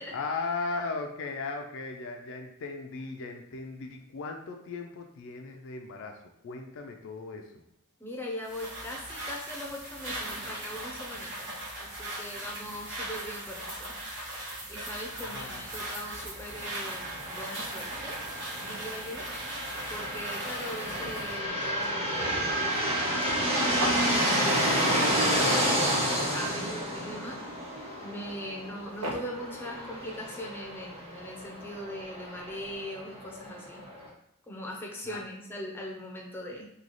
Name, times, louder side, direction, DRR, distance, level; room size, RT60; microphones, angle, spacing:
voice 1, 0.0-6.2 6.4-7.6 15.1-15.7 35.0-35.2, left 3 dB, 60° left, 3 dB, 0.4 m, -37 dB
voice 2, 8.0-13.9 14.7-18.2 18.6-19.2 19.9-27.4 28.0-33.8 34.5-36.7, left 1 dB, 10° left, -1 dB, 0.6 m, -40 dB
sound 1, 8.4-21.4, right 1 dB, 55° right, 1.2 m, -39 dB
sound 2, 16.5-34.1, equal, 25° right, 0.9 m, -30 dB
sound 3, 18.9-19.5 19.8-19.9 20.3-20.4 20.6-24.9 25.8-26.5 26.9-27.1 28.2-28.3 28.9-29.6 30.0-30.1, right 1 dB, 70° right, 0.9 m, -39 dB
3.8 x 2.3 x 3.1 m, 0.82 s
head